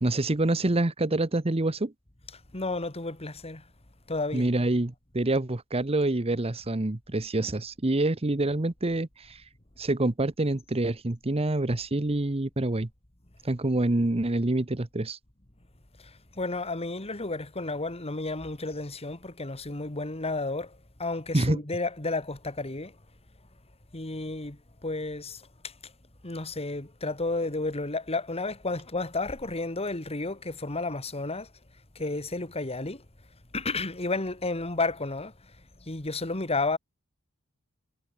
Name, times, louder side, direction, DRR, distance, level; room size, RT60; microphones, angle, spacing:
voice 1, 0.0-1.9 4.3-9.4 9.8-12.9 13.4-15.2 21.3-21.6, right 2 dB, 25° right, 1.0 m, -26 dB
voice 2, 2.5-3.6 4.1-4.5 16.0-22.9 23.9-25.9 26.2-31.5 32.0-33.0 33.5-35.3 35.8-36.8, left 3 dB, 30° left, 2.2 m, -32 dB
head